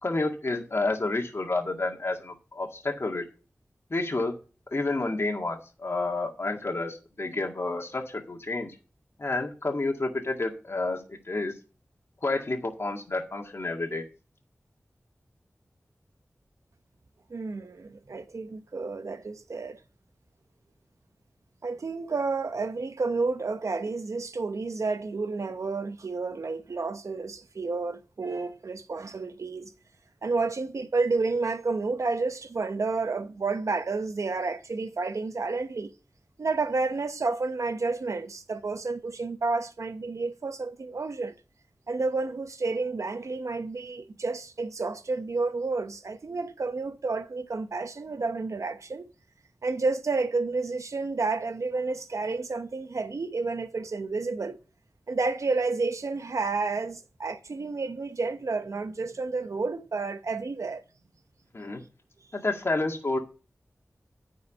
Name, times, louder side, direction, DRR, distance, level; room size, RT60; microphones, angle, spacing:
voice 1, 0.0-3.2 3.9-4.3 4.7-8.8 9.2-11.5 12.2-14.0 61.5-61.8 62.3-63.2, left 2 dB, 55° left, 1.9 m, -30 dB
voice 2, 17.3-19.8 21.6-29.7 30.2-35.9 36.4-41.3 41.9-49.0 49.6-54.6 55.1-60.8, right 3 dB, 80° right, 0.8 m, -30 dB
9.6 x 4.8 x 7.0 m
wide cardioid pair, 60°, 5 cm